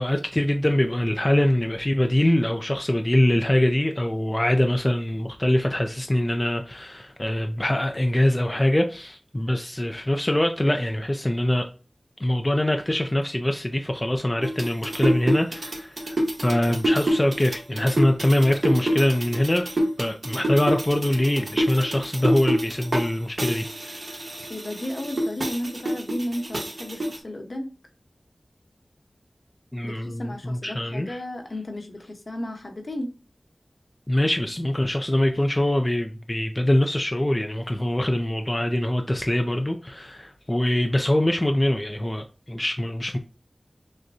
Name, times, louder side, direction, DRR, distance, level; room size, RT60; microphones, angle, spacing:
voice 1, 0.0-11.7 12.2-16.2 16.4-24.3 29.7-31.2 34.1-43.2, left 1 dB, 25° left, 0.4 m, -23 dB
sound 1, 14.4-23.1 23.4-27.2, equal, 60° right, 1.2 m, -27 dB
voice 2, 24.5-27.7 29.8-33.1, left 1 dB, 55° left, 1.0 m, -33 dB
6.4 x 2.2 x 2.6 m
wide cardioid pair, 60°, 0 cm